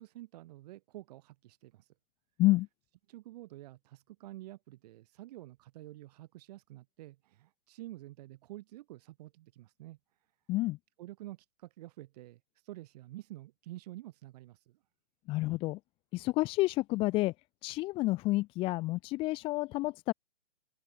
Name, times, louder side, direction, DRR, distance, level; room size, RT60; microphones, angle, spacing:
voice 1, 0.0-1.9 3.1-10.0 11.0-14.8, right 16 dB, 40° right, 7.7 m, -49 dB
voice 2, 15.3-15.8 16.1-17.3 17.6-20.1, left 19 dB, 15° left, 0.9 m, -29 dB
hypercardioid pair, 140°, 31 cm